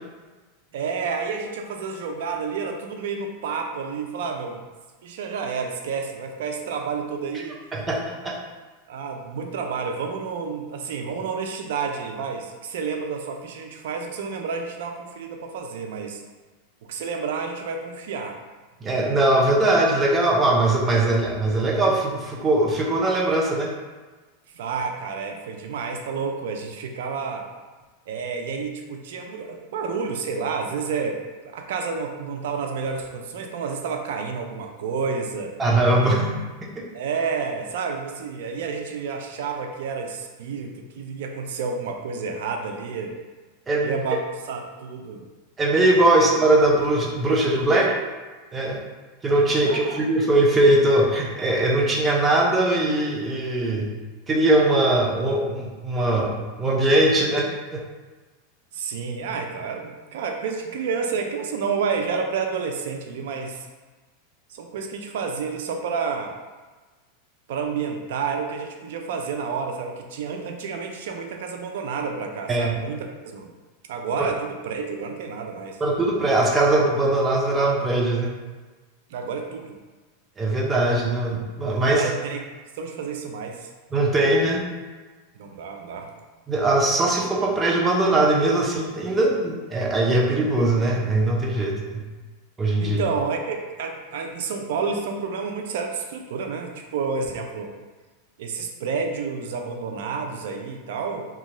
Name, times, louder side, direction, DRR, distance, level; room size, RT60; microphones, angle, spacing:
voice 1, 0.7-4.6 5.0-7.6 8.9-16.2 16.9-18.4 24.5-27.5 28.1-31.2 31.4-35.5 36.9-43.1 43.8-44.2 44.5-45.3 49.6-50.1 58.7-63.7 64.5-66.3 67.5-73.5 73.9-75.8 79.1-79.8 81.9-82.4 82.8-83.7 85.4-86.1 92.8-97.7 98.4-101.3, right 5 dB, 75° right, 3 dB, 0.4 m, -30 dB
voice 2, 7.7-8.4 18.8-23.7 35.6-36.9 43.7-44.0 45.6-47.9 48.5-48.8 49.2-53.9 54.3-57.8 72.5-72.8 74.2-74.3 75.8-78.3 80.4-82.0 83.9-84.6 86.5-92.1 92.6-93.0, right 2 dB, 15° right, -1 dB, 0.5 m, -21 dB
2.6 x 2.3 x 3.0 m, 1.3 s
supercardioid pair, 130°, 0 cm